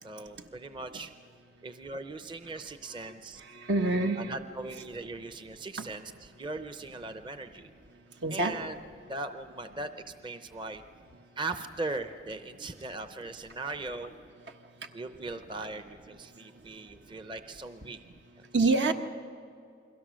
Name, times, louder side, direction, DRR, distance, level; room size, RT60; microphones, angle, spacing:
voice 1, 0.0-1.1 1.6-3.4 4.2-7.7 8.3-8.8 9.1-9.9 10.2-10.8 11.4-14.1 14.9-18.0 18.4-18.5, right 2 dB, 25° right, 8 dB, 0.6 m, -39 dB
voice 2, 3.7-4.3 5.8-5.9 8.2-8.7 18.5-18.9, right 3 dB, 75° right, 5 dB, 1.3 m, -26 dB
29.5 x 22.0 x 6.3 m, 2.4 s
head